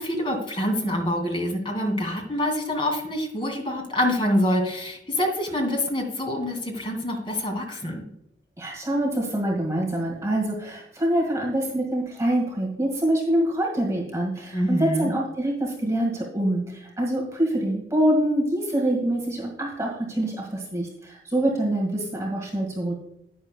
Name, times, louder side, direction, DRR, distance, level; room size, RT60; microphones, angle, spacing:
voice 1, 0.0-8.0 14.5-15.1, left 1 dB, 30° left, 2 dB, 2.3 m, -26 dB
voice 2, 8.6-23.0, right 1 dB, 15° right, -1 dB, 1.8 m, -25 dB
11.0 x 9.6 x 2.2 m, 0.79 s
head